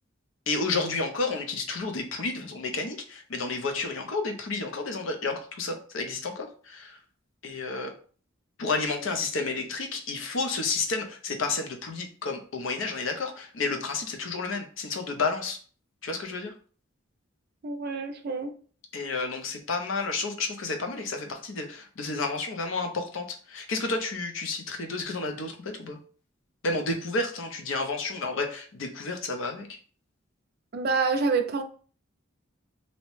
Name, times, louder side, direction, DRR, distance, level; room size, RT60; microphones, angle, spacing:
voice 1, 0.5-7.0 7.4-8.0 8.6-15.6 16.0-16.5 18.9-26.0 26.6-29.8, left 3 dB, 80° left, 5 dB, 0.5 m, -31 dB
voice 2, 17.6-18.5 30.7-31.6, right 4 dB, 50° right, 7 dB, 0.4 m, -27 dB
2.7 x 2.0 x 3.1 m, 0.41 s
head